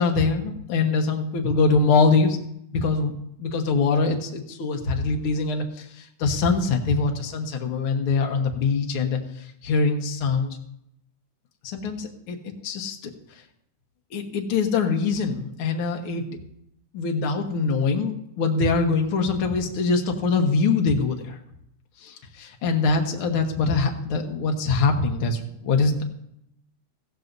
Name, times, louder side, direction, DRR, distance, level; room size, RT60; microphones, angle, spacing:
voice 1, 0.0-2.4 2.7-3.1 3.4-9.2 9.6-10.6 11.6-13.1 14.1-16.2 16.9-21.4 22.0-26.0, left 4 dB, 55° left, 2 dB, 1.7 m, -23 dB
15.0 x 14.0 x 2.7 m, 0.78 s
omnidirectional pair, 3.6 m